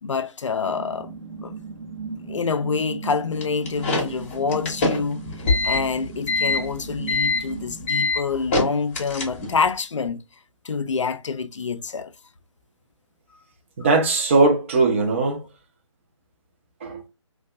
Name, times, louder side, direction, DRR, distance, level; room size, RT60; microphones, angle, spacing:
voice 1, 0.0-1.1 1.4-1.6 2.3-10.2 10.6-12.1 13.8-13.9, left 5 dB, 70° left, 0.4 m, -27 dB
sound 1, 0.6-8.0, right 5 dB, 60° right, 0.8 m, -37 dB
sound 2, 3.4-9.7, left 3 dB, 25° left, 0.7 m, -24 dB
voice 2, 13.8-15.4 16.8-17.1, right 3 dB, 25° right, 0.5 m, -19 dB
2.6 x 2.3 x 2.3 m
figure-of-eight pair, 140°, 16 cm